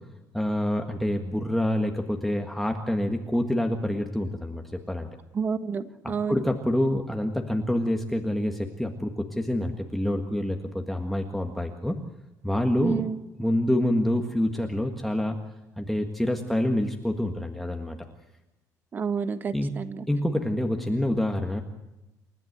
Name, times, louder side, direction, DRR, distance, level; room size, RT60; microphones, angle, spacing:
voice 1, 0.3-5.1 6.3-12.0 12.4-13.0 13.4-15.4 15.8-18.1 19.5-19.7 20.1-21.6, left 1 dB, ahead, 3 dB, 1.6 m, -27 dB
voice 2, 5.3-6.4 12.8-13.2 18.9-20.1, right 6 dB, 30° right, 11 dB, 1.4 m, -29 dB
29.5 x 14.5 x 8.0 m, 0.95 s
cardioid pair, 165°, 6 cm